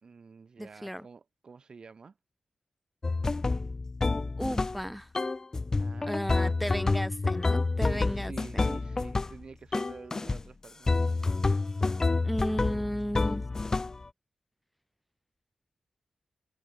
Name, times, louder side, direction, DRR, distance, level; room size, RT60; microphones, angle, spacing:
voice 1, 0.0-2.1 5.8-6.9 7.8-10.9, right 5 dB, 45° right, 3.3 m, -48 dB
voice 2, 0.6-1.1 4.4-5.1 6.1-8.7 12.2-13.4, equal, ahead, 2.9 m, -34 dB
sound 1, 3.0-4.9 5.2-9.4 9.7-10.4 10.9-14.1, left 3 dB, 25° left, 1.5 m, -28 dB
wide cardioid pair, 125°, 2 cm